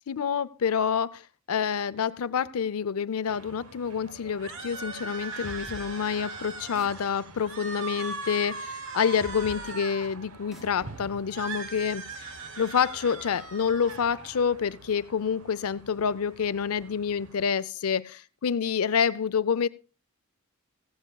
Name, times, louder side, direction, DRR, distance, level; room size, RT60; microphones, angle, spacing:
voice 1, 0.1-12.3 12.6-19.7, left 7 dB, 85° left, 0.5 m, -28 dB
sound 1, 3.3-17.5, right 3 dB, 85° right, 1.1 m, -50 dB
sound 2, 4.4-7.0 7.4-10.2 11.3-14.0, right 4 dB, 60° right, 1.5 m, -39 dB
sound 3, 5.4-12.8, equal, ahead, 2.1 m, -51 dB
15.5 x 15.0 x 2.3 m
head